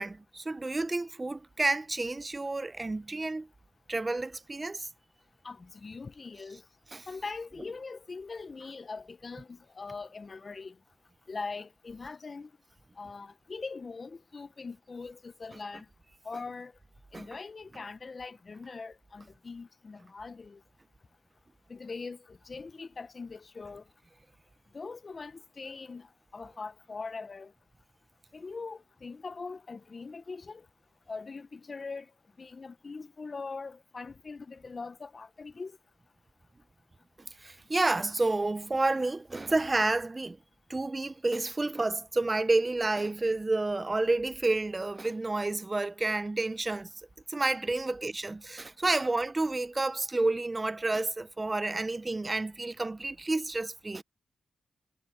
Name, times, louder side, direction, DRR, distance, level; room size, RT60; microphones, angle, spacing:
voice 1, 0.0-3.5 3.9-4.9 6.9-7.0 17.1-17.3 37.4-40.4 40.7-46.9 47.3-54.0, right 2 dB, 30° right, 0.7 m, -30 dB
voice 2, 5.4-6.6 7.1-10.7 11.3-12.5 13.0-15.9 16.2-16.7 17.1-20.6 21.7-23.8 24.7-26.1 26.3-27.5 28.3-30.6 31.1-32.1 32.4-35.7, left 4 dB, 45° left, 0.8 m, -41 dB
cardioid pair, 60°, 0 cm